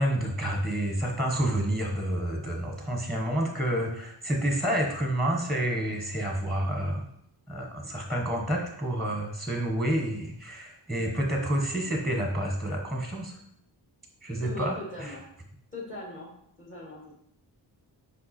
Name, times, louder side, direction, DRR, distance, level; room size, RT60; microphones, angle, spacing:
voice 1, 0.0-7.1 7.5-13.4 14.2-15.1, right 1 dB, ahead, 1 dB, 1.1 m, -29 dB
voice 2, 7.6-7.9 14.4-15.3 15.7-16.3 16.6-17.1, left 1 dB, 25° left, -2 dB, 1.6 m, -41 dB
5.4 x 5.1 x 4.3 m, 0.71 s
wide cardioid pair, 130°, 45 cm